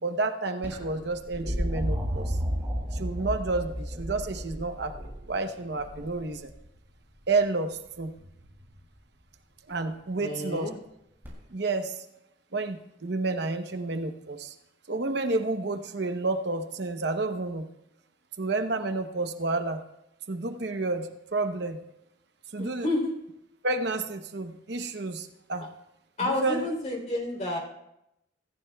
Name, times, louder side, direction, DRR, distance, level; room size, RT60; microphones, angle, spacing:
voice 1, 0.0-2.4 2.9-4.9 5.3-6.5 7.3-8.1 9.7-10.7 11.5-12.0 12.5-14.5 14.9-17.7 18.4-19.8 20.3-21.8 22.5-22.9 23.6-25.7 26.2-26.7, right 3 dB, 55° right, 6 dB, 0.8 m, -30 dB
sound 1, 0.6-6.6 8.2-8.7 11.2-11.3, equal, 10° right, 6.4 m, -33 dB
voice 2, 10.2-10.7 22.6-23.1 26.2-27.6, left 1 dB, 35° left, -1 dB, 3.2 m, -30 dB
25.5 x 14.5 x 2.3 m, 0.86 s
head